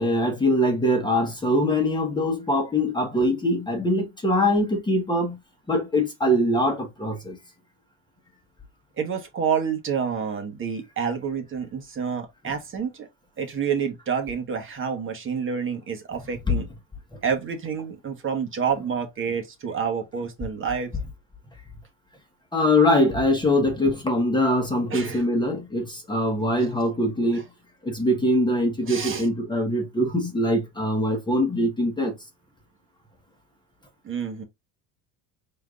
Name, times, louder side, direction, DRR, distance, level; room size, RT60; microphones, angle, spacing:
voice 1, 0.0-5.4 5.7-7.4 16.5-16.6 22.5-27.4 27.8-32.1, left 1 dB, 10° left, 1.2 m, -23 dB
voice 2, 9.0-13.1 13.4-16.7 17.2-20.9 24.9-25.2 27.3-27.4 28.9-29.3 34.0-34.4, right 6 dB, 30° right, 1.3 m, -28 dB
4.5 x 3.9 x 2.4 m
cardioid pair, 120°, 39 cm